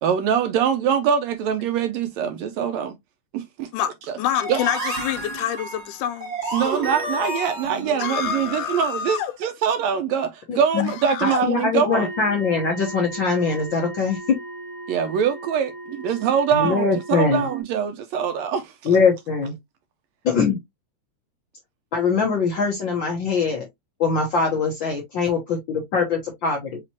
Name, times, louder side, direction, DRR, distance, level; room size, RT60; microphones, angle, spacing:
voice 1, 0.0-2.9 3.3-3.7 4.1-4.2 4.5-4.6 6.5-12.1 14.9-19.0, right 7 dB, 80° right, 1.6 m, -23 dB
voice 2, 3.7-6.6 8.0-9.3 10.8-11.4, left 10 dB, 90° left, 2.2 m, -27 dB
sound 1, 4.3-9.2, right 2 dB, 30° right, 1.2 m, -31 dB
voice 3, 10.5-10.9 11.2-14.4 16.5-17.5 18.8-19.6 20.2-20.6 21.9-23.7 24.0-26.8, left 5 dB, 70° left, 1.1 m, -22 dB
sound 2, 11.9-17.6, right 2 dB, 10° left, 1.4 m, -37 dB
5.8 x 2.9 x 2.8 m
omnidirectional pair, 3.5 m